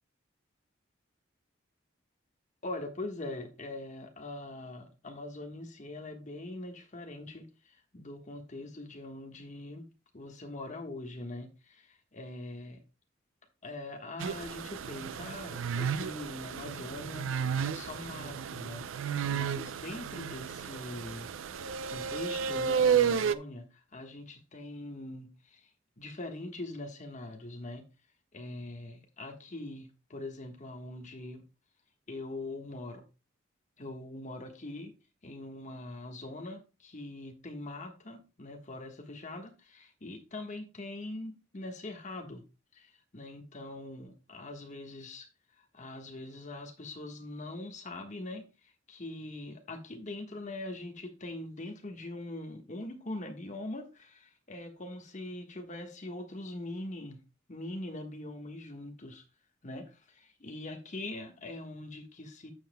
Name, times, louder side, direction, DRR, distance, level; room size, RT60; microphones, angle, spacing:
voice 1, 2.6-7.5 7.9-9.8 10.1-12.8 13.6-21.3 21.9-25.7 26.0-27.8 28.3-31.4 32.1-33.0 33.8-34.9 35.2-42.4 42.7-45.3 45.6-48.4 48.9-57.2 57.5-59.2 59.6-62.5, left 2 dB, 40° left, 1.4 m, -42 dB
sound 1, 14.2-23.4, right 7 dB, 90° right, 0.4 m, -32 dB
11.0 x 7.3 x 2.2 m
head